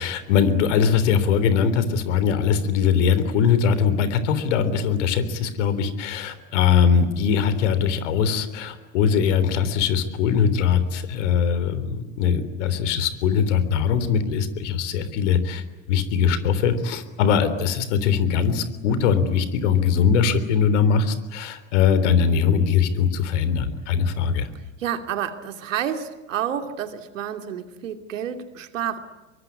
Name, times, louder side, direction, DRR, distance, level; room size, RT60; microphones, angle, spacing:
voice 1, 0.0-24.5, left 7 dB, 65° left, 13 dB, 3.6 m, -21 dB
voice 2, 24.8-29.0, right 9 dB, 75° right, 7 dB, 2.8 m, -29 dB
24.5 x 23.5 x 9.7 m, 1.1 s
hypercardioid pair, 90°, 38 cm